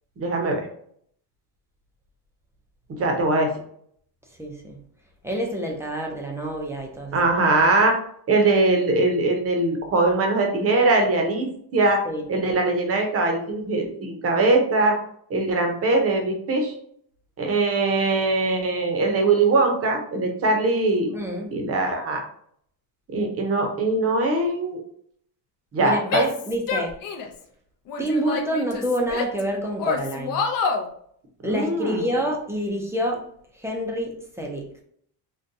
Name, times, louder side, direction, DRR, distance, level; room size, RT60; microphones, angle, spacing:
voice 1, 0.2-0.6 2.9-3.5 7.1-7.9 8.3-11.5 11.7-12.0 12.3-15.0 15.3-16.7 17.4-21.1 21.5-22.2 23.1-24.8 25.7-26.2 31.4-32.1, right 2 dB, 35° right, 3 dB, 0.7 m, -21 dB
voice 2, 4.4-4.8 5.2-7.3 12.0-12.2 21.1-21.5 25.8-26.9 28.0-30.4 31.4-33.2 33.6-34.6, equal, 5° right, 0 dB, 0.4 m, -27 dB
Female speech woman speaking / Yell, 26.1-27.4 27.9-29.4 29.8-30.9, left 4 dB, 50° left, 0.5 m, -27 dB
3.9 x 2.2 x 2.6 m, 0.64 s
cardioid pair, 155°, 43 cm